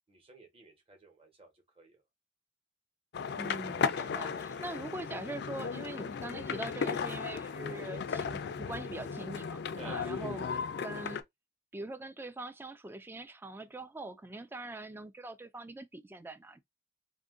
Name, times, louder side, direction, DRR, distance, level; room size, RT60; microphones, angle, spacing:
voice 1, 0.1-2.0 4.5-4.8 9.7-10.5, right 3 dB, 30° right, 1.1 m, -54 dB
sound 1, 3.1-11.2, left 6 dB, 60° left, 0.4 m, -36 dB
voice 2, 3.4-8.3 8.6-11.2 11.7-16.6, right 2 dB, 10° right, 0.3 m, -43 dB
2.7 x 2.5 x 3.7 m
head